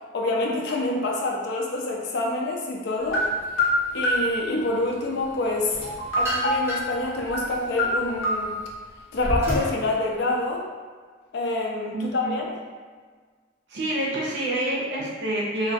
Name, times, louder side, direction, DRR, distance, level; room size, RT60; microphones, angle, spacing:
voice 1, 0.1-3.3 3.9-5.7 6.2-8.5 9.1-10.6 11.3-12.5, left 2 dB, 55° left, -1 dB, 0.4 m, -26 dB
sound 1, 3.1-4.3 5.8-6.7 7.2-7.5 7.8-8.5, left 1 dB, 85° left, 0.7 m, -24 dB
sound 2, 5.7-7.0 7.6-9.8, equal, 10° right, 0.6 m, -30 dB
voice 2, 11.9-12.5 13.7-15.7, right 1 dB, 60° right, -4 dB, 0.6 m, -27 dB
2.3 x 2.2 x 2.6 m, 1.5 s
head